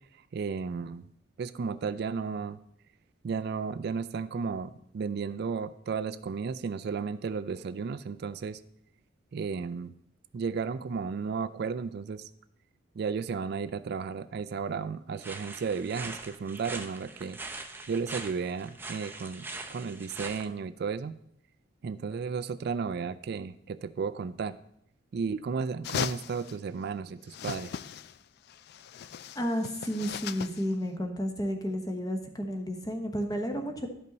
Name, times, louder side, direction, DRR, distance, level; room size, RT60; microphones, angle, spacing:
voice 1, 0.3-1.0 1.4-2.6 3.2-8.6 9.3-9.9 10.3-12.3 13.0-17.4 17.9-21.2 21.8-24.6 25.1-27.7, right 5 dB, 60° right, 12 dB, 0.3 m, -33 dB
sound 1, 15.2-20.5, right 3 dB, 10° right, 0.6 m, -42 dB
sound 2, 25.8-26.6 27.3-28.2 28.5-30.7, left 8 dB, 55° left, 0.3 m, -37 dB
voice 2, 29.3-33.9, equal, 20° left, 4 dB, 1.0 m, -32 dB
12.0 x 5.4 x 4.0 m, 0.73 s
head